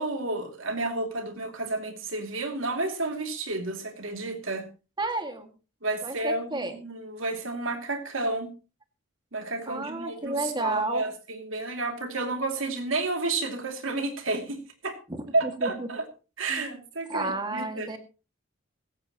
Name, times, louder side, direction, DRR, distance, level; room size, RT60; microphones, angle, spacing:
voice 1, 0.0-4.6 5.8-8.5 9.3-15.0 15.3-16.1 16.4-18.0, right 2 dB, 85° right, 6 dB, 2.7 m, -31 dB
voice 2, 5.0-5.5 6.0-6.8 9.7-11.0 15.1-15.9 16.5-16.6 17.1-18.0, right 2 dB, 25° right, 6 dB, 2.0 m, -31 dB
17.0 x 15.0 x 3.0 m, 0.32 s
head